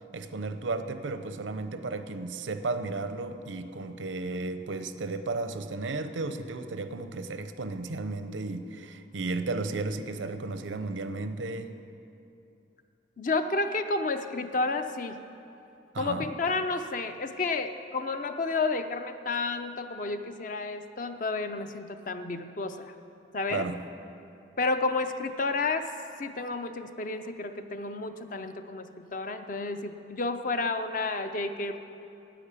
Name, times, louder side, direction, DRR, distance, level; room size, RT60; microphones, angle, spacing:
voice 1, 0.1-11.8 15.9-16.3 23.5-23.8, right 3 dB, 90° right, 10 dB, 0.7 m, -34 dB
voice 2, 13.2-15.2 16.0-22.9 23.3-23.6 24.6-25.9 26.2-31.8, left 3 dB, 45° left, 8 dB, 0.6 m, -31 dB
10.0 x 9.2 x 8.3 m, 2.7 s
head